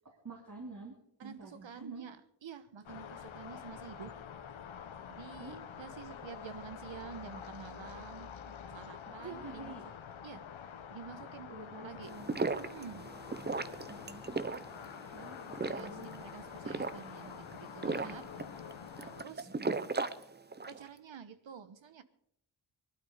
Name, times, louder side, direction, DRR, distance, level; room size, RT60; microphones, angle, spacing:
voice 1, 0.2-0.9 1.2-2.0 5.4-5.6 9.1-9.8 11.5-12.4 13.9-14.4 14.8-16.1 17.8-18.1 19.4-19.9, right 3 dB, 40° right, 3.0 m, -48 dB
voice 2, 1.2-4.1 5.1-9.8 10.2-10.5 10.9-11.5 11.8-12.3 12.6-13.1 15.2-15.3 15.6-18.3 19.0-19.5 20.7-22.0, right 6 dB, 70° right, 1.3 m, -49 dB
sound 1, 2.8-19.2, left 8 dB, 85° left, 1.2 m, -47 dB
sound 2, 12.0-20.9, right 3 dB, 20° right, 0.7 m, -37 dB
21.0 x 12.0 x 5.1 m
wide cardioid pair, 125°, 46 cm